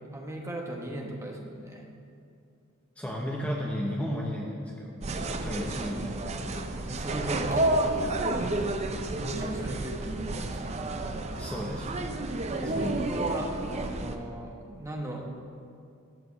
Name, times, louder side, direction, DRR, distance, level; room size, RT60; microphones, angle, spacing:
voice 1, 0.1-1.9 5.2-5.4 6.8-8.0 8.3-8.5 9.1-10.8 12.5-15.3, right 1 dB, 15° right, 1 dB, 1.0 m, -37 dB
voice 2, 3.0-5.0 5.3-6.2 11.4-11.9 12.7-13.0, equal, 5° left, -3 dB, 0.8 m, -33 dB
sound 1, 5.0-14.2, right 2 dB, 30° right, 0.5 m, -31 dB
12.5 x 5.0 x 7.0 m, 2.4 s
head